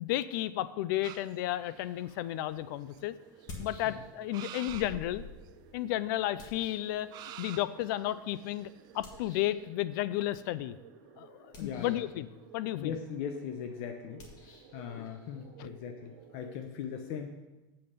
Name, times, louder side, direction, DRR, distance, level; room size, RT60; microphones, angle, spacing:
voice 1, 0.0-3.2 3.6-5.2 5.7-7.1 7.4-8.7 8.9-10.8 11.2-12.3 12.5-12.9 15.0-15.1 15.6-15.7, left 14 dB, 70° left, 16 dB, 0.4 m, -33 dB
sound 1, 1.0-1.9 2.5-2.6 2.9-3.5 4.3-5.0 5.5-5.6 7.1-9.0, right 11 dB, 35° right, 0.4 m, -47 dB
sound 2, 1.6-16.6, right 8 dB, 75° right, 1.1 m, -57 dB
sound 3, 2.3-2.4 3.3-4.3 4.7-7.5 9.0-9.6 11.4-12.2 14.1-16.7, left 2 dB, 35° left, 1.6 m, -50 dB
voice 2, 11.6-12.0 12.7-14.2 14.7-17.3, left 7 dB, 55° left, 5 dB, 0.7 m, -39 dB
7.8 x 5.3 x 6.7 m, 1.1 s
supercardioid pair, 155°, 11 cm